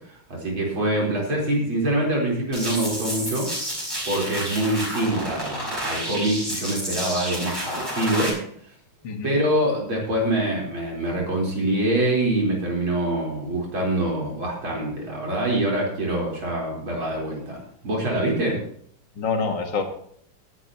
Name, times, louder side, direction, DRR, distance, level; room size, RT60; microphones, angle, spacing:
voice 1, 0.1-3.5 4.0-8.4 9.2-18.6, right 1 dB, 65° right, -3 dB, 4.9 m, -25 dB
sound 1, 2.5-8.3, equal, 10° right, 4.6 m, -30 dB
voice 2, 9.0-9.4 19.2-19.8, left 5 dB, 55° left, 4 dB, 2.2 m, -26 dB
18.0 x 11.0 x 3.0 m, 0.63 s
omnidirectional pair, 2.4 m